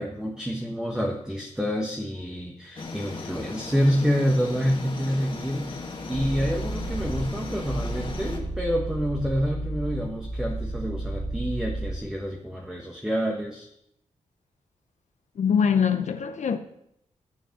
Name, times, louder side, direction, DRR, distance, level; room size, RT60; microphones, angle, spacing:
voice 1, 0.0-5.8 6.1-13.7, equal, 5° right, 1.2 m, -28 dB
sound 1, 2.8-8.4, left 3 dB, 40° left, 1.9 m, -37 dB
sound 2, 6.1-12.0, right 1 dB, 45° right, 3.0 m, -32 dB
voice 2, 15.4-16.6, left 7 dB, 65° left, 0.8 m, -23 dB
12.0 x 5.1 x 7.1 m
wide cardioid pair, 105°, 13 cm